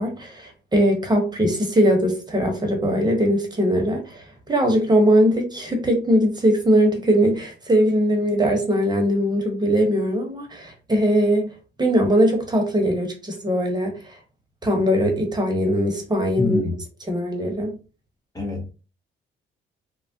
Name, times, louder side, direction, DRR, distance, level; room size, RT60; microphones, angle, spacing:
voice 1, 0.0-11.5 11.8-14.0 14.6-16.6 17.1-17.7, equal, 20° right, 0.9 m, -20 dB
voice 2, 16.4-16.7 18.3-18.7, left 2 dB, 20° left, 0.6 m, -25 dB
3.3 x 2.1 x 2.6 m
cardioid pair, 90°, 20 cm